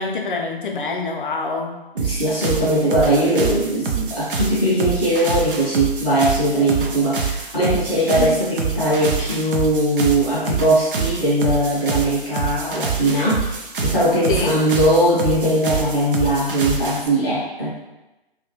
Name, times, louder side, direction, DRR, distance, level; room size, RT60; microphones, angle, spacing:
voice 1, 0.0-1.8 7.2-7.3 8.2-8.4 14.3-14.6, left 3 dB, 55° left, 2 dB, 0.5 m, -25 dB
voice 2, 2.0-17.8, right 1 dB, ahead, -19 dB, 0.4 m, -20 dB
sound 1, 2.0-17.1, right 5 dB, 60° right, 0.5 m, -26 dB
2.3 x 2.2 x 2.9 m, 1.0 s
figure-of-eight pair, 135°, 30 cm